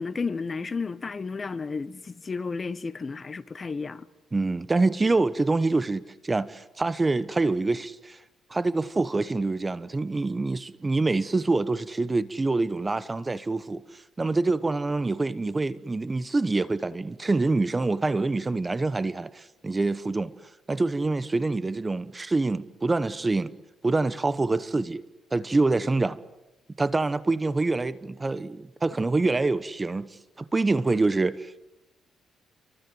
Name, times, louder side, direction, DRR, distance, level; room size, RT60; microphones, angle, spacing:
voice 1, 0.0-4.1, left 4 dB, 35° left, 1.3 m, -32 dB
voice 2, 4.3-8.2 8.5-20.3 20.7-23.5 23.8-25.0 25.3-26.2 26.8-30.1 30.4-31.5, right 3 dB, 20° right, 1.0 m, -26 dB
28.5 x 24.0 x 7.9 m
cardioid pair, 90°, 0 cm